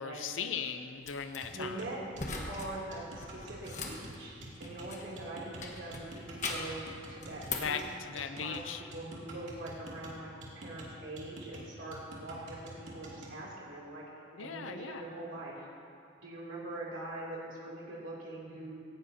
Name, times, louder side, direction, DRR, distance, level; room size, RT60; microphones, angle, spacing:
voice 1, 0.0-1.8 7.6-8.8 14.4-15.0, left 6 dB, 80° left, 7 dB, 0.6 m, -38 dB
sound 1, 1.0-1.4 2.1-2.7 3.0-5.2 5.6-6.8 7.2-7.8, left 3 dB, 40° left, 1.4 m, -40 dB
sound 2, 1.4-13.4, right 1 dB, 70° right, 2.6 m, -48 dB
voice 2, 1.4-2.0 2.5-7.8 8.1-8.6 8.9-14.0 14.4-15.6 16.2-18.8, right 2 dB, 85° right, -6 dB, 2.9 m, -43 dB
18.0 x 16.0 x 2.8 m, 2.5 s
head